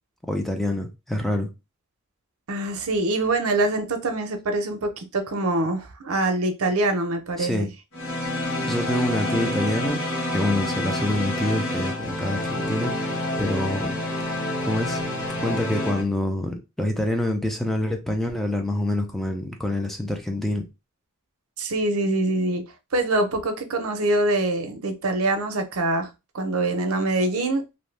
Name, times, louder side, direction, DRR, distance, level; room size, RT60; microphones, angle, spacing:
voice 1, 0.3-1.5 7.4-7.7 8.6-10.0 10.3-13.9 14.6-15.0 15.4-20.6, left 1 dB, ahead, 0.4 m, -26 dB
voice 2, 2.5-7.7 21.6-22.6 22.9-26.1 26.3-27.6, right 2 dB, 85° right, 0.6 m, -24 dB
sound 1, 7.9-16.0, left 1 dB, 75° left, 1.0 m, -28 dB
2.6 x 2.1 x 3.2 m
head